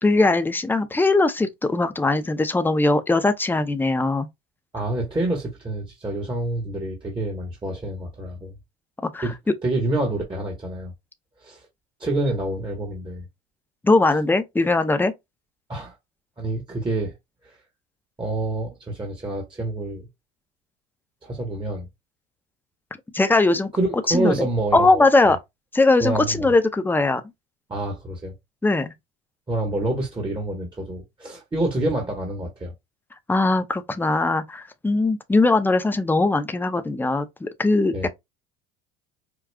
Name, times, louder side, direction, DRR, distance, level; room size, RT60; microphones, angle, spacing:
voice 1, 0.0-4.3 9.1-9.3 13.8-15.1 23.1-23.7 24.1-24.5 24.7-25.4 25.7-27.2 28.6-28.9 33.3-38.1, left 2 dB, 5° left, 0.5 m, -20 dB
voice 2, 4.7-8.5 9.2-9.3 9.6-10.9 11.4-11.6 12.0-13.2 15.7-15.9 16.4-17.2 17.4-17.6 18.2-20.1 21.2-21.9 23.7-25.1 26.0-26.5 27.7-28.3 29.5-32.7 37.9-38.1, right 2 dB, 15° right, 1.2 m, -27 dB
4.9 x 2.2 x 2.3 m
hypercardioid pair, 75°, 30 cm